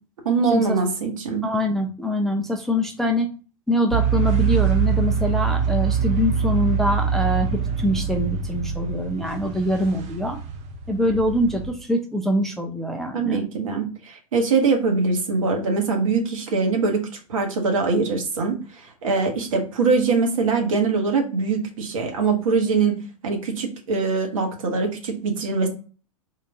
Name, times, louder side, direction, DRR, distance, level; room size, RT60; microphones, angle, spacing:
voice 1, 0.2-1.4 13.1-22.9 23.2-25.7, right 4 dB, 65° right, 3 dB, 1.1 m, -23 dB
voice 2, 1.4-3.3 3.7-10.4 10.9-13.4, left 1 dB, ahead, 2 dB, 0.4 m, -24 dB
sound 1, 3.9-11.7, right 7 dB, 35° right, 0.7 m, -24 dB
3.7 x 2.5 x 3.3 m, 0.36 s
figure-of-eight pair, 95°, 19 cm